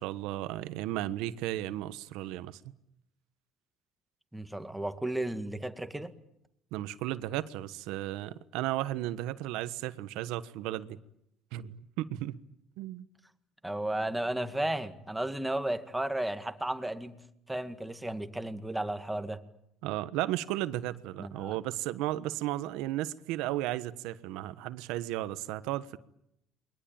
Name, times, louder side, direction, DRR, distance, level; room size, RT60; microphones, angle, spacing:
voice 1, 0.0-2.6 6.7-11.0 11.5-12.4 12.8-13.1 19.8-26.0, right 14 dB, 80° right, 1.3 m, -34 dB
voice 2, 4.3-6.1 13.6-17.1 17.5-19.4 21.2-21.6, right 1 dB, 5° right, 2.0 m, -34 dB
29.0 x 22.5 x 8.9 m
cardioid pair, 110°, 0 cm